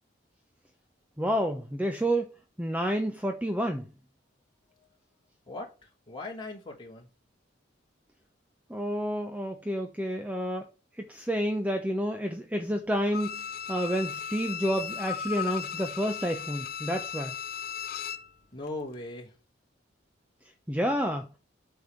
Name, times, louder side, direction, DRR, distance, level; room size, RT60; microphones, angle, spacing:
voice 1, 1.2-2.3 2.6-3.9 8.7-10.7 11.0-13.4 13.7-17.3 20.7-21.3, equal, 10° right, 0.8 m, -29 dB
voice 2, 6.1-7.1 18.5-19.3, left 2 dB, 25° left, 3.3 m, -38 dB
Bowed string instrument, 13.1-18.3 18.7-18.8, left 8 dB, 50° left, 0.7 m, -36 dB
8.4 x 5.6 x 6.9 m
head